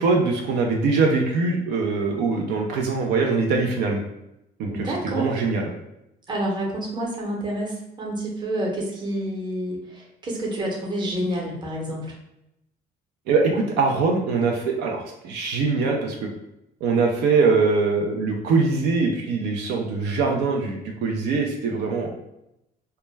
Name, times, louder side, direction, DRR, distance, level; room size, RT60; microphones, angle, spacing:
voice 1, 0.0-4.0 4.6-5.7 13.3-16.2 16.8-22.1, right 4 dB, 85° right, 1 dB, 0.4 m, -22 dB
voice 2, 4.7-5.3 6.3-12.1, right 1 dB, 25° right, -3 dB, 0.8 m, -28 dB
2.2 x 2.1 x 3.2 m, 0.85 s
cardioid pair, 110°, 17 cm